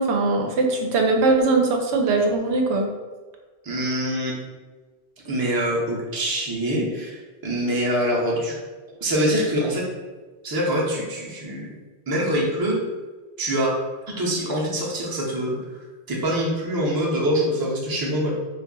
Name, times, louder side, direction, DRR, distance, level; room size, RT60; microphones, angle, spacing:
voice 1, 0.0-2.9, right 3 dB, 80° right, 3 dB, 0.9 m, -20 dB
voice 2, 3.6-4.4 5.2-8.6 9.0-9.9 10.4-11.7 12.1-12.8 13.4-13.8 14.1-15.6 16.1-18.3, equal, 25° right, -4 dB, 0.6 m, -24 dB
2.6 x 2.4 x 3.8 m, 1.3 s
omnidirectional pair, 1.1 m